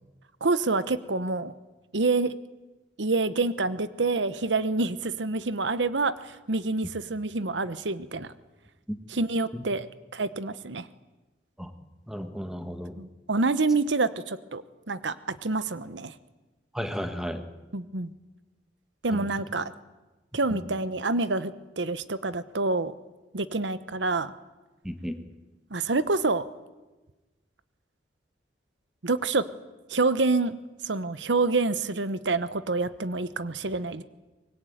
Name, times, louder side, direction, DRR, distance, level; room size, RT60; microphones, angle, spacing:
voice 1, 0.4-1.5 1.9-2.4 3.0-8.3 9.1-9.9 10.1-10.9 13.0-16.1 17.7-18.1 19.0-19.7 20.3-23.0 23.3-24.3 25.7-26.4 29.0-29.4 29.9-30.6 30.8-34.0, right 3 dB, 80° right, 14 dB, 1.0 m, -27 dB
voice 2, 12.1-12.9 16.7-17.4 19.1-19.3 20.5-20.6 24.8-25.1, equal, 5° right, 8 dB, 1.6 m, -34 dB
24.0 x 21.0 x 9.3 m, 1.2 s
head